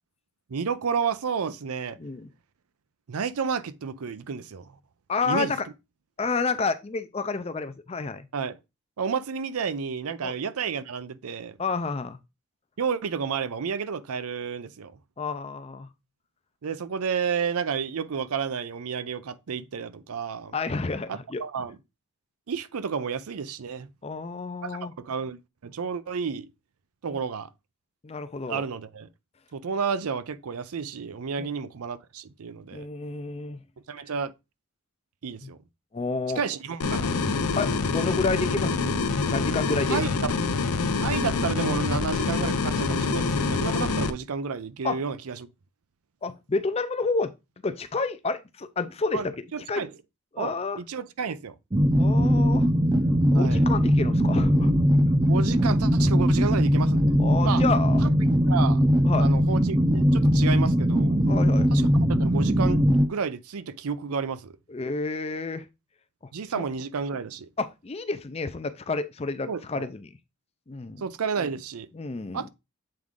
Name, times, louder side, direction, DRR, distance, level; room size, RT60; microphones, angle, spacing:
voice 1, 0.5-2.0 3.1-4.7 5.3-5.5 8.3-8.6 9.0-11.6 12.8-14.9 16.6-20.6 21.1-21.8 22.5-23.9 24.6-25.4 25.6-26.5 27.0-27.5 28.5-29.1 29.5-32.8 33.9-34.3 35.2-35.6 36.4-37.1 39.9-40.3 41.0-45.5 49.1-49.9 50.4-51.5 53.3-53.6 55.3-57.0 57.4-57.6 58.0-58.1 58.5-58.8 59.2-61.2 61.7-64.5 66.3-67.5 69.5-69.9 71.0-71.9 72.3-72.5, right 6 dB, 80° right, 0.5 m, -31 dB
voice 2, 2.0-2.3 5.1-5.7 6.2-8.3 10.2-10.3 11.6-12.2 15.2-15.9 20.5-21.4 24.0-24.9 27.1-27.2 28.0-28.6 31.4-31.5 32.7-33.6 35.4-35.5 35.9-36.4 37.6-38.9 39.3-40.0 44.8-45.0 46.2-47.3 47.6-49.9 50.3-50.8 52.0-52.7 53.3-54.7 57.2-58.0 59.0-59.3 61.3-61.7 64.7-65.7 66.6-66.7 67.6-70.1 70.7-71.0 71.9-72.5, left 4 dB, 25° left, 0.4 m, -30 dB
sound 1, 36.8-44.1, left 4 dB, 90° left, 0.6 m, -26 dB
sound 2, 51.7-63.1, equal, 20° right, 0.6 m, -20 dB
7.7 x 3.6 x 3.6 m
head